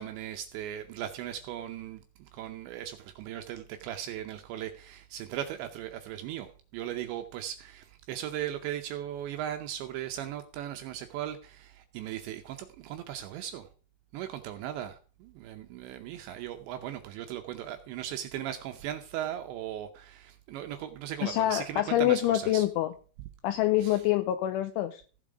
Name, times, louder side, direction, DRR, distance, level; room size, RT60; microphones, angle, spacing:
voice 1, 0.0-13.7 14.1-22.7 23.8-24.0, right 11 dB, 80° right, 6 dB, 2.7 m, -38 dB
voice 2, 21.2-22.9 23.4-25.0, left 13 dB, 80° left, 8 dB, 3.0 m, -26 dB
15.5 x 7.3 x 5.0 m, 0.38 s
omnidirectional pair, 5.8 m